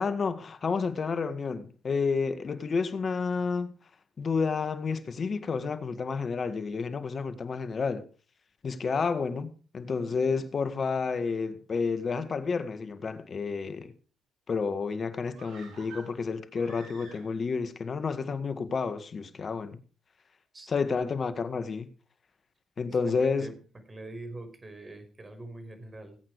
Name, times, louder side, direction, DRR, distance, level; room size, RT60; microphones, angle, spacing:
voice 1, 0.0-3.7 4.2-8.0 8.6-13.9 14.5-19.8 20.7-21.9 22.8-23.5, left 5 dB, 45° left, 1.9 m, -30 dB
sound 1, 15.3-17.6 17.9-18.0, right 4 dB, 75° right, 7.3 m, -50 dB
voice 2, 22.9-23.6 23.9-26.2, right 2 dB, 30° right, 5.4 m, -44 dB
19.5 x 8.8 x 4.9 m
supercardioid pair, 60°, 0 cm